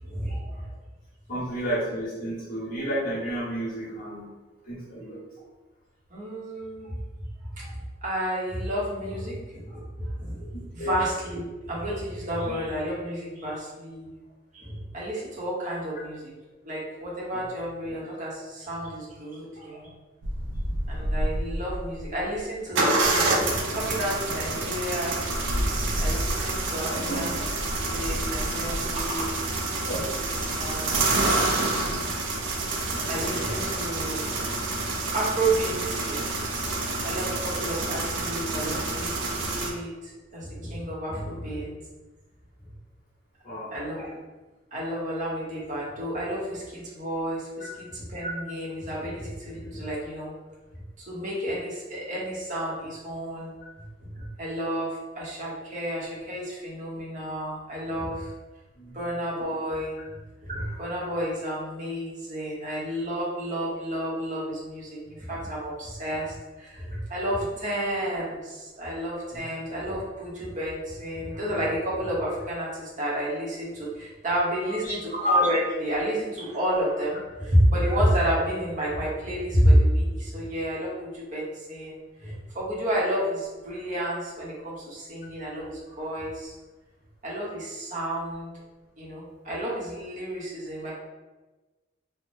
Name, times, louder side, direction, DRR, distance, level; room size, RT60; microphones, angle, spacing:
voice 1, 0.0-0.7 6.1-6.9 7.5-10.5 10.7-14.1 14.5-16.3 16.6-19.9 20.9-23.4 23.7-25.2 25.7-27.4 27.8-29.4 30.5-31.2 33.1-34.2 35.1-36.5 37.0-41.7 43.7-44.1 44.7-50.3 51.0-53.5 54.0-58.3 58.9-60.0 60.4-86.5 87.2-88.5 89.0-90.9, equal, 40° right, -5 dB, 0.9 m, -30 dB
voice 2, 1.3-4.3 4.6-5.2 10.5-10.9 12.5-12.6 17.3-17.5 26.8-27.2 29.8-30.0 43.4-43.7 47.7-47.8 58.7-59.0 69.3-69.4 74.7-74.9, right 1 dB, 50° left, -9 dB, 1.3 m, -32 dB
sound 1, 20.2-22.1 22.8-39.7, right 2 dB, 75° right, 0.5 m, -28 dB
3.3 x 2.1 x 2.6 m, 1.2 s
head